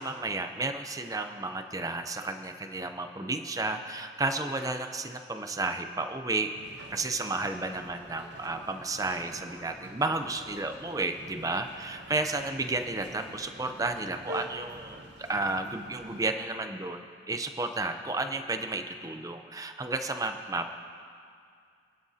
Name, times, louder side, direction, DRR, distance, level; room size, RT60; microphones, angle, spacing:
voice 1, 0.0-6.6 6.9-20.7, right 2 dB, 20° right, 7 dB, 0.6 m, -32 dB
sound 1, 6.5-16.3, right 1 dB, 65° right, 1.1 m, -47 dB
28.0 x 11.0 x 2.8 m, 2.3 s
head